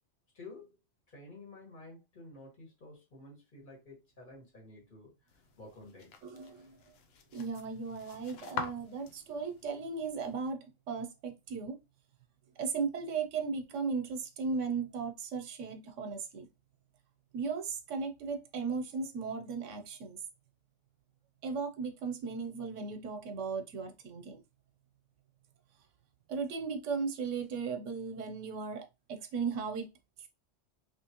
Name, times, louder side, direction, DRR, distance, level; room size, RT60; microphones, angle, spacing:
voice 1, 0.3-0.8 1.1-5.1 5.6-6.1, left 2 dB, 40° left, 1.6 m, -51 dB
sound 1, 5.3-10.4, left 6 dB, 65° left, 0.7 m, -45 dB
voice 2, 6.2-6.8 7.3-11.8 12.6-16.5 17.3-20.2 21.4-24.4 26.3-29.9, right 5 dB, 80° right, 1.0 m, -36 dB
3.1 x 2.9 x 2.9 m
omnidirectional pair, 1.3 m